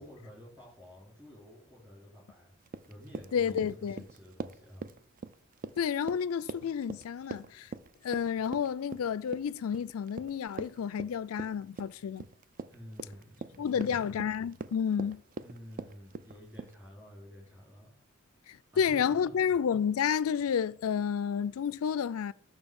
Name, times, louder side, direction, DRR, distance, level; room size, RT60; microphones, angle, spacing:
voice 1, 0.0-2.5 2.9-4.9 12.7-14.2 15.4-17.9 18.7-19.3, equal, 10° right, 3.5 m, -50 dB
Run, 2.7-16.7, right 4 dB, 40° right, 0.4 m, -43 dB
voice 2, 3.3-4.0 5.8-7.7 8.0-12.2 13.6-15.2 18.5-22.3, left 7 dB, 75° left, 0.4 m, -30 dB
10.5 x 6.6 x 5.3 m
head